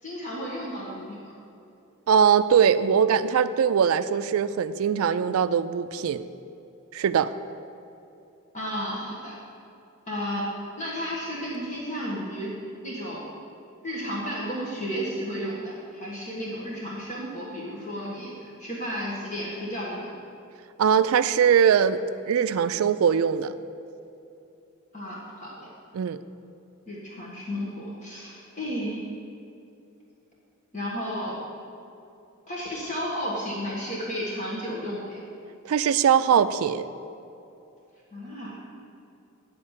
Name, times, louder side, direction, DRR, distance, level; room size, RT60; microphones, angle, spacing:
voice 1, 0.0-1.2 8.5-9.4 10.1-10.5 10.8-12.5 12.8-13.3 13.8-20.1 24.9-25.7 26.9-29.0 30.7-31.4 32.5-35.2 38.1-38.6, equal, 35° left, -5 dB, 1.5 m, -33 dB
voice 2, 2.1-6.2 6.9-7.3 20.8-23.5 25.9-26.2 35.6-36.9, right 7 dB, 75° right, 13 dB, 0.3 m, -21 dB
9.9 x 4.3 x 7.4 m, 2.7 s
head